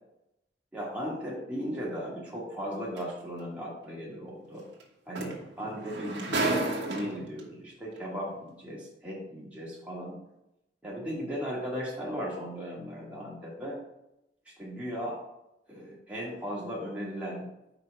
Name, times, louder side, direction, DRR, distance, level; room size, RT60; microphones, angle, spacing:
voice 1, 0.7-4.6 5.1-10.2 10.8-13.8 14.6-15.2 15.7-17.5, equal, 10° right, -6 dB, 2.2 m, -37 dB
sound 1, 3.0-3.1 4.8-4.9 5.1-7.4 8.3-8.4, right 2 dB, 80° right, 1.3 m, -31 dB
5.1 x 4.6 x 6.0 m, 0.87 s
head